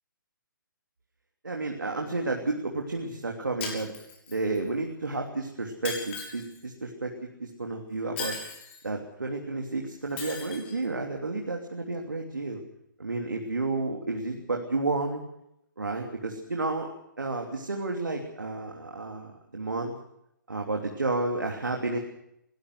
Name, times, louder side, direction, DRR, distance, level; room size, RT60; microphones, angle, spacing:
voice 1, 1.4-3.9 4.3-7.1 7.4-8.4 8.8-12.6 13.0-15.2 15.8-16.9 17.2-20.0 20.5-22.0, right 3 dB, 70° right, 1 dB, 3.2 m, -31 dB
Shatter, 3.6-4.6 5.8-6.6 8.2-8.8 10.2-10.7, left 5 dB, 30° left, 6.4 m, -37 dB
22.0 x 19.5 x 6.3 m, 0.79 s
figure-of-eight pair, 135°, 11 cm